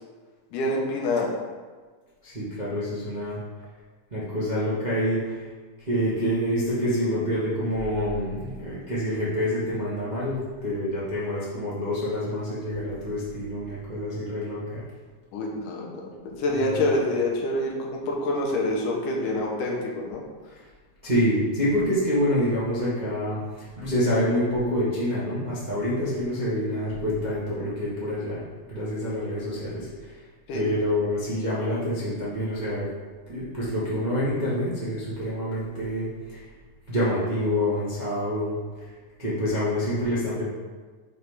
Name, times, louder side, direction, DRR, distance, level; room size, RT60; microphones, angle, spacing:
voice 1, 0.5-1.3 15.3-20.2 30.5-30.7, left 1 dB, 90° left, -1 dB, 2.6 m, -26 dB
voice 2, 2.2-3.4 4.1-5.4 5.9-14.8 16.6-16.7 21.0-23.4 23.8-28.4 28.7-29.9 30.5-32.9 33.3-36.4 36.9-38.5 39.2-40.4, equal, 75° right, -10 dB, 0.4 m, -27 dB
6.5 x 3.3 x 5.4 m, 1.4 s
omnidirectional pair, 3.6 m